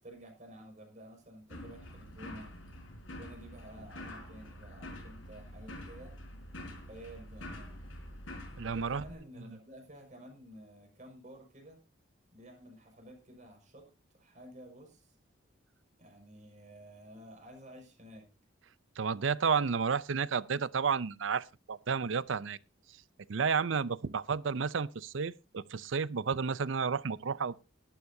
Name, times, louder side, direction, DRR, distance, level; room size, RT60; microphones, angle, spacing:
voice 1, 0.0-2.5 3.2-6.2 6.9-7.9 8.6-11.8 12.3-13.9 14.1-15.2 16.0-18.3, right 1 dB, 40° right, 5.5 m, -52 dB
sound 1, 1.5-9.1, left 1 dB, 80° left, 4.9 m, -46 dB
voice 2, 8.6-9.0 19.0-22.6 23.3-27.6, right 5 dB, 70° right, 0.6 m, -31 dB
18.5 x 11.5 x 2.7 m
head